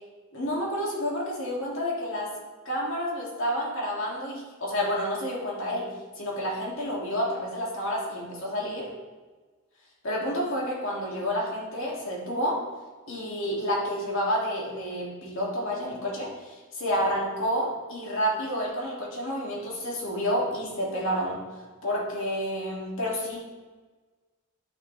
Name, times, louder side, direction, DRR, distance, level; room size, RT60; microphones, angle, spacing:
voice 1, 0.3-2.3 2.6-5.9 6.2-8.9 10.0-12.6 13.1-21.4 21.8-23.4, equal, 60° left, -4 dB, 2.6 m, -29 dB
11.0 x 6.4 x 3.4 m, 1.3 s
head